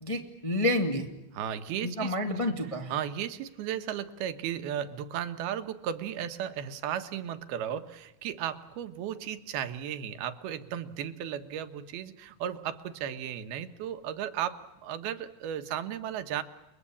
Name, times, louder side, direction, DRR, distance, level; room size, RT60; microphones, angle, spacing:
voice 1, 0.0-1.1 1.8-2.9, left 1 dB, 15° left, 3 dB, 1.0 m, -29 dB
voice 2, 1.3-2.6 2.9-16.4, right 10 dB, 90° right, 9 dB, 3.1 m, -35 dB
30.0 x 21.5 x 8.6 m, 0.94 s
omnidirectional pair, 4.3 m